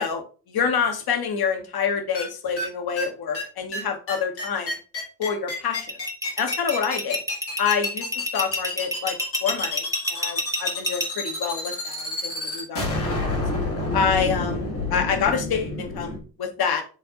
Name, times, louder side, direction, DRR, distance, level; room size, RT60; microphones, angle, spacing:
voice 1, 0.0-4.8 5.2-6.0 6.4-7.2 7.6-12.9 13.2-13.4 13.9-16.8, left 6 dB, 45° left, 7 dB, 1.3 m, -27 dB
sound 1, 2.1-2.2 2.6-2.7 3.0-3.1 3.3-3.4 3.7-3.8 4.1-16.2, left 2 dB, 90° left, 1.8 m, -28 dB
sound 2, 5.7-11.1, left 1 dB, 5° right, 1.1 m, -27 dB
7.7 x 3.5 x 3.7 m, 0.37 s
figure-of-eight pair, 40°, 50 cm